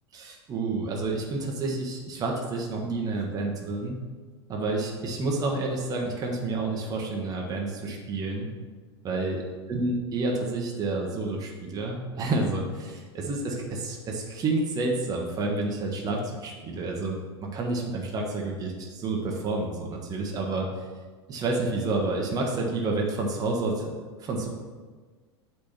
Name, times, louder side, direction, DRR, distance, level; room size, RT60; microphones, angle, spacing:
voice 1, 0.1-4.0 4.5-8.5 9.0-9.4 9.7-20.7 21.3-23.9 24.2-24.5, right 2 dB, 25° right, -1 dB, 1.2 m, -29 dB
8.4 x 3.5 x 6.0 m, 1.4 s
figure-of-eight pair, 85°, 14 cm